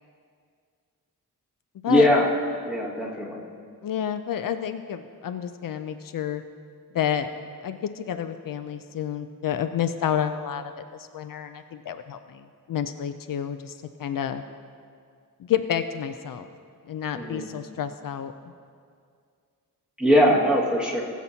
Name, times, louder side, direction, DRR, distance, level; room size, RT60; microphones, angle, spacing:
voice 1, 1.9-2.3 2.7-3.4 17.1-17.4 20.0-21.0, equal, 5° right, -4 dB, 1.8 m, -21 dB
voice 2, 3.8-6.4 6.9-14.4 15.4-16.5 16.9-18.3 20.3-20.4, left 9 dB, 70° left, 9 dB, 0.5 m, -30 dB
20.0 x 7.2 x 2.8 m, 2.2 s
wide cardioid pair, 125°, 34 cm